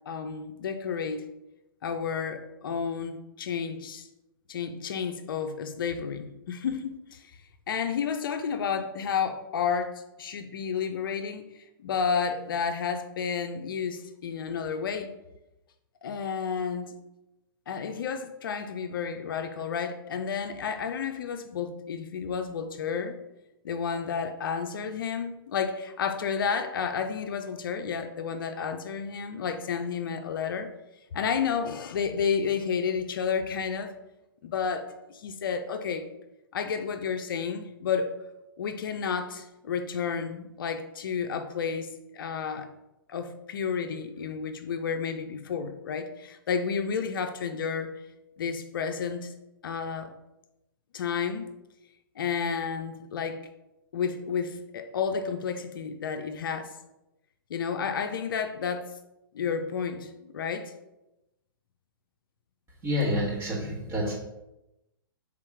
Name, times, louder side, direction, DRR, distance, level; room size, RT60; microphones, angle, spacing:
voice 1, 0.1-1.3 1.8-4.1 4.5-7.3 7.7-15.1 16.0-16.9 17.7-23.2 23.6-30.7 31.1-33.9 34.4-36.0 36.5-38.1 38.6-41.9 42.1-42.7 43.1-48.0 48.4-49.3 49.6-50.1 50.9-51.5 52.2-53.4 53.9-56.7 57.5-58.9 59.3-60.7, left 6 dB, 65° left, 7 dB, 0.5 m, -31 dB
voice 2, 62.8-64.1, left 1 dB, 20° right, -4 dB, 1.5 m, -28 dB
3.6 x 3.0 x 4.8 m, 0.94 s
hypercardioid pair, 125°, 12 cm